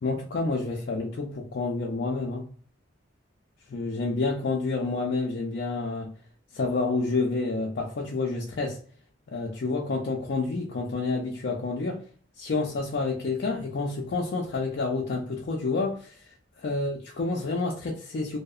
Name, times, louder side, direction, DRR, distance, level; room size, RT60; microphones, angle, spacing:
voice 1, 0.0-2.4 3.7-6.1 6.5-8.8 9.3-12.0 12.4-16.2 16.6-18.4, left 3 dB, 55° left, 0.4 m, -29 dB
2.7 x 2.0 x 2.3 m
head